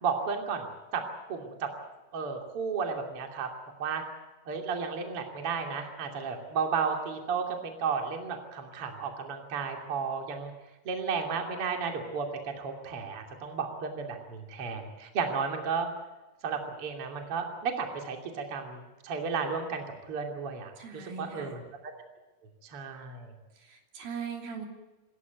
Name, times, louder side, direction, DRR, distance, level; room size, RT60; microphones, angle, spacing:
voice 1, 0.0-0.7 0.9-1.7 2.1-3.5 3.8-4.0 4.4-10.5 10.8-15.9 16.4-21.9 22.6-23.3, right 5 dB, 40° right, 3 dB, 3.3 m, -33 dB
voice 2, 20.8-21.6 23.6-24.7, right 6 dB, 70° right, 3 dB, 4.8 m, -40 dB
26.5 x 15.0 x 9.4 m, 1.1 s
omnidirectional pair, 4.5 m